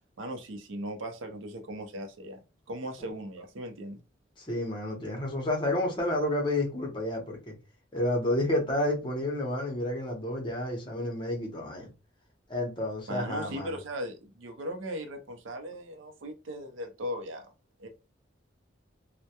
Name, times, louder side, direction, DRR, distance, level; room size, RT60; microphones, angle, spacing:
voice 1, 0.2-2.4 2.7-4.0 13.1-17.5 17.8-17.9, equal, 85° right, 0.5 m, -38 dB
voice 2, 4.4-7.5 7.9-11.9 12.5-13.7, left 1 dB, 25° left, 0.7 m, -30 dB
2.1 x 2.1 x 2.8 m
head